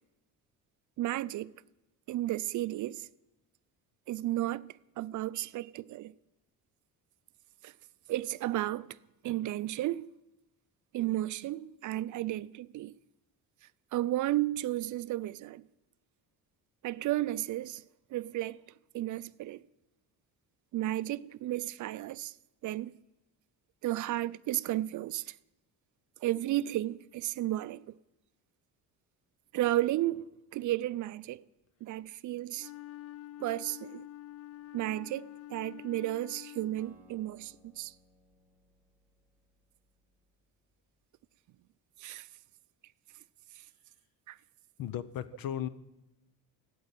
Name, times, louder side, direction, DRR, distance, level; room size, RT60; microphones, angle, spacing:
voice 1, 1.0-1.5 2.1-3.1 4.1-6.1 7.6-7.7 8.1-9.0 9.2-10.1 10.9-12.9 13.9-15.6 16.8-17.8 18.1-18.6 18.9-19.6 20.7-22.3 22.6-22.9 23.8-25.4 26.2-27.9 29.5-31.4 31.8-32.7 33.4-34.1 34.7-37.9 42.0-42.3 43.6-43.7 44.3-44.4, right 15 dB, 55° right, 0.4 m, -33 dB
Wind instrument woodwind instrument, 32.5-37.1, left 14 dB, 40° left, 0.5 m, -47 dB
Acoustic guitar, 36.8-40.9, equal, 5° right, 1.8 m, -64 dB
voice 2, 44.8-45.7, left 10 dB, 70° left, 0.9 m, -35 dB
13.5 x 8.5 x 8.8 m
cardioid pair, 140°, 36 cm